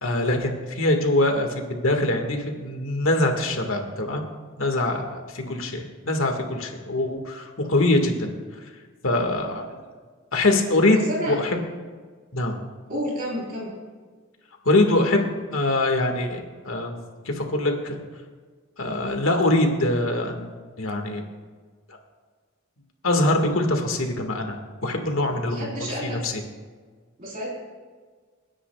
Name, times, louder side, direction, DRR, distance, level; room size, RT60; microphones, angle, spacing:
voice 1, 0.0-4.3 4.6-8.3 9.0-9.8 10.3-11.6 12.3-12.6 14.7-17.0 17.3-18.0 18.8-21.2 23.0-25.7 26.0-26.4, left 2 dB, 75° left, 3 dB, 1.8 m, -23 dB
voice 2, 12.9-13.7 25.5-26.2 27.2-27.5, equal, 40° right, -4 dB, 4.0 m, -30 dB
29.5 x 10.0 x 2.4 m, 1.5 s
head